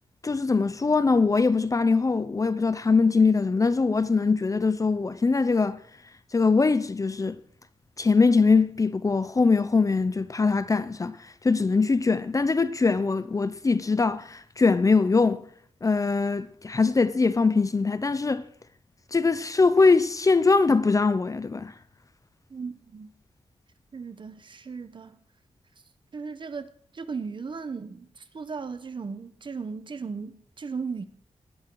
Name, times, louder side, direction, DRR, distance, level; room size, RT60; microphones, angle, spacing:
voice 1, 0.2-5.8 6.3-7.4 8.0-15.4 15.8-18.4 19.1-21.7, left 4 dB, 30° left, 0.6 m, -22 dB
voice 2, 22.5-23.1 23.9-25.2 26.1-31.0, right 5 dB, 45° right, 1.0 m, -36 dB
17.5 x 13.0 x 4.7 m
wide cardioid pair, 135°, 12 cm